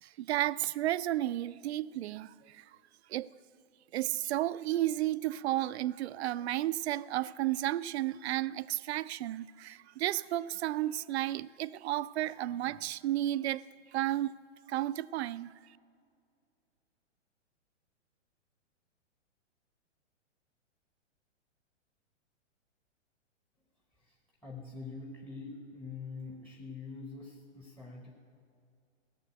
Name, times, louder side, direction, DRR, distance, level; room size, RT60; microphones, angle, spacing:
voice 1, 0.0-2.7 3.1-3.3 3.9-13.6 13.9-14.3 14.7-15.5, right 14 dB, 60° right, 0.5 m, -33 dB
voice 2, 24.0-28.1, left 4 dB, 5° left, 0.8 m, -45 dB
16.0 x 7.0 x 9.2 m
hypercardioid pair, 130°, 37 cm